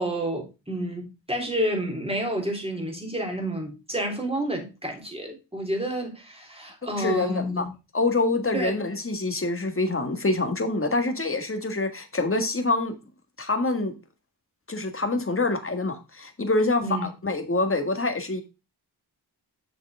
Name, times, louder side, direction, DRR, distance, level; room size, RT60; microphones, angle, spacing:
voice 1, 0.0-7.7 8.5-8.7 16.8-17.1, right 1 dB, 15° right, 3.4 m, -29 dB
voice 2, 7.0-7.7 7.9-12.9 13.4-13.9 14.7-18.4, left 2 dB, 30° left, 1.8 m, -26 dB
6.8 x 6.8 x 3.5 m
wide cardioid pair, 80°, 40 cm